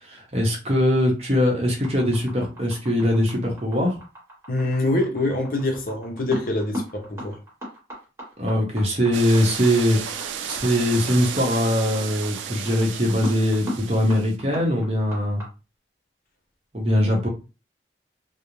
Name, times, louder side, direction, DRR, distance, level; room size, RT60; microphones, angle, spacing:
voice 1, 0.0-4.0 8.4-15.4 16.7-17.3, equal, 35° right, 0.8 m, -22 dB
sound 1, 1.8-15.5, equal, 15° right, 1.2 m, -36 dB
voice 2, 4.5-7.4, left 2 dB, 50° left, 0.6 m, -25 dB
sound 2, 9.1-14.4, right 8 dB, 85° right, 0.4 m, -33 dB
2.4 x 2.0 x 3.0 m
head